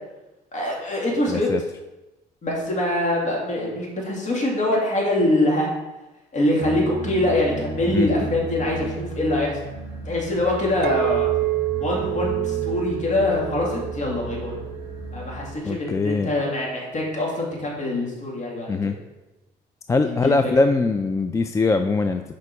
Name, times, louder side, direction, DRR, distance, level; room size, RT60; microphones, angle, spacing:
voice 1, 0.5-1.5 2.4-5.7 6.3-9.6 10.1-11.3 11.8-14.6 15.1-18.9 20.0-20.5, left 1 dB, 45° left, -3 dB, 2.4 m, -24 dB
voice 2, 1.3-1.6 7.9-8.1 15.7-16.3 18.7-18.9 19.9-22.2, left 3 dB, 20° left, 7 dB, 0.3 m, -21 dB
sound 1, 6.6-15.6, right 3 dB, 25° right, 2.4 m, -35 dB
Chink clink, 10.8-15.1 15.6-16.0, right 19 dB, 75° right, 0.4 m, -28 dB
6.7 x 5.1 x 4.8 m, 1.1 s
cardioid pair, 110°, 17 cm